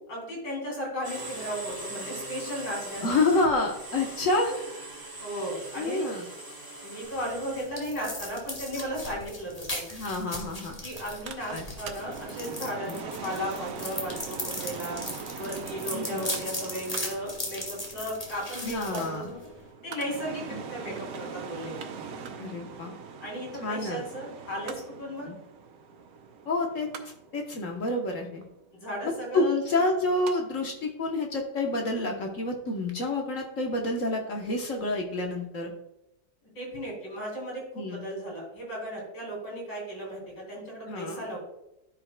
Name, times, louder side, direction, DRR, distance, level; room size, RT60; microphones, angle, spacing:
voice 1, 0.1-3.2 5.2-6.1 6.8-9.8 10.8-15.0 15.4-19.4 19.8-21.8 23.2-25.3 28.7-29.5 36.5-41.4, equal, 85° left, -3 dB, 3.9 m, -35 dB
sound 1, 1.0-7.7, right 2 dB, 20° right, 0.6 m, -41 dB
voice 2, 3.0-4.6 5.8-6.2 9.9-10.8 11.5-11.6 12.9-13.0 15.9-16.2 18.6-19.3 20.5-20.6 22.4-22.9 23.6-24.0 25.3-25.4 26.5-26.9 27.3-28.4 29.3-35.7 37.7-38.0 40.9-41.2, left 2 dB, 50° left, 2 dB, 1.2 m, -28 dB
sound 2, 7.0-19.7, left 1 dB, 20° left, 1.4 m, -38 dB
Mechanical fan, 11.0-30.3 30.7-30.8, right 5 dB, 60° right, 1.1 m, -42 dB
13.0 x 5.2 x 2.2 m, 0.88 s
omnidirectional pair, 1.9 m